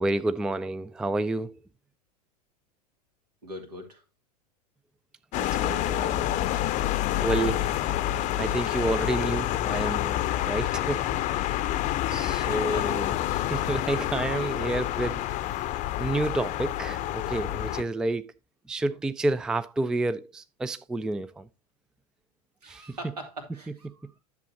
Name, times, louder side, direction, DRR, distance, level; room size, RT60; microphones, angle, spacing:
voice 1, 0.0-1.6 5.4-6.2 6.9-7.9 8.4-11.2 12.1-15.2 16.0-18.3 18.7-21.5 22.6-23.0 23.8-23.9, right 2 dB, 5° right, 0.3 m, -30 dB
voice 2, 3.4-4.0 12.3-13.1 14.3-14.7 22.6-24.1, right 1 dB, 75° right, 2.6 m, -42 dB
sound 1, 5.3-17.8, left 13 dB, 35° left, 0.7 m, -28 dB
10.5 x 6.9 x 2.8 m
figure-of-eight pair, 85°, 20 cm